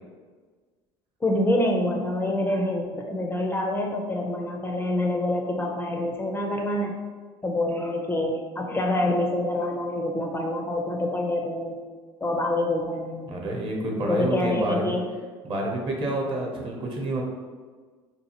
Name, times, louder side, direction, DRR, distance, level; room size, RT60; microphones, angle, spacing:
voice 1, 1.2-7.0 7.4-11.8 12.2-13.3 14.1-15.0, left 1 dB, 15° left, 1 dB, 0.4 m, -26 dB
voice 2, 13.3-14.9 15.4-17.2, right 1 dB, 40° right, -1 dB, 0.8 m, -28 dB
2.7 x 2.4 x 2.8 m, 1.5 s
hypercardioid pair, 75°, 13 cm